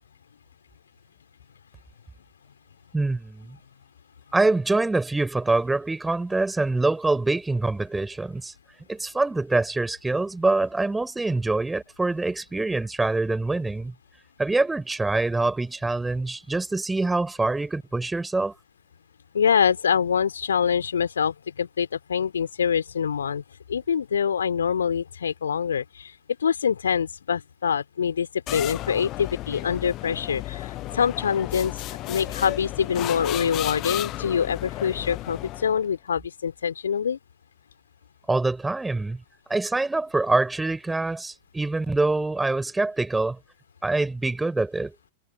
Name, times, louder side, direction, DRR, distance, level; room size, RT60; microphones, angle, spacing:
voice 1, 2.9-3.6 4.3-8.5 8.9-13.9 14.4-18.5 38.3-39.2 39.5-43.4 43.8-44.9, right 2 dB, 10° right, 4.8 m, -25 dB
voice 2, 19.3-23.4 23.7-26.1 26.4-31.7 32.1-37.2, left 7 dB, 70° left, 3.2 m, -25 dB
sound 1, 28.5-35.9, left 17 dB, 35° left, 1.1 m, -33 dB
figure-of-eight pair, 90°, 0 cm